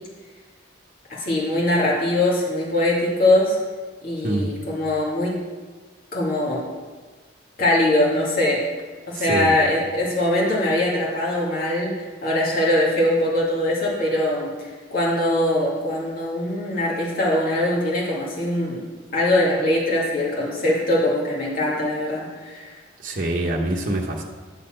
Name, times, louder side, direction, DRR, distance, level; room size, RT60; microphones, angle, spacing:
voice 1, 1.1-3.6 4.0-5.3 6.1-6.6 7.6-8.6 9.1-11.9 12.2-14.5 14.9-18.8 19.1-22.6, left 1 dB, 50° left, -5 dB, 2.3 m, -22 dB
voice 2, 9.1-9.5 23.0-24.2, right 1 dB, 50° right, -2 dB, 1.0 m, -25 dB
11.0 x 4.2 x 7.7 m, 1.4 s
head